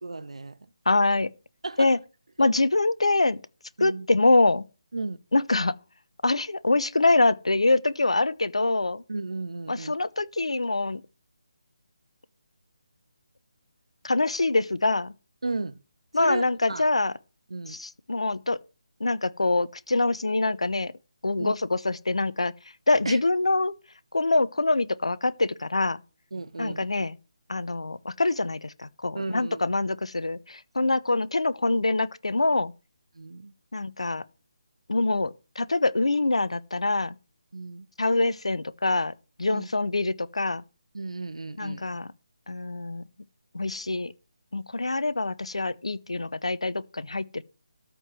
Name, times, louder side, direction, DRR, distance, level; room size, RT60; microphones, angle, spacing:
voice 1, 0.0-0.6 1.6-1.9 2.4-2.5 3.8-4.1 4.9-5.2 9.1-9.9 15.4-15.8 16.2-16.9 17.5-17.8 21.4-21.5 23.0-23.2 26.3-26.8 29.1-29.6 33.2-33.5 37.5-37.9 39.5-39.7 40.9-41.8, right 3 dB, 70° right, 0.9 m, -34 dB
voice 2, 0.9-1.3 1.8-2.0 2.4-3.4 3.8-4.6 5.3-5.7 6.2-9.0 9.7-11.0 14.0-15.1 16.1-17.1 17.7-18.6 19.0-20.9 21.2-22.5 22.9-23.7 24.1-26.0 26.6-27.2 27.5-32.7 33.7-34.2 34.9-37.2 38.0-39.1 39.4-40.6 41.6-42.1 42.5-43.0 43.5-44.1 44.5-47.4, left 2 dB, 75° left, 0.8 m, -25 dB
13.5 x 4.7 x 7.6 m
figure-of-eight pair, 150°, 3 cm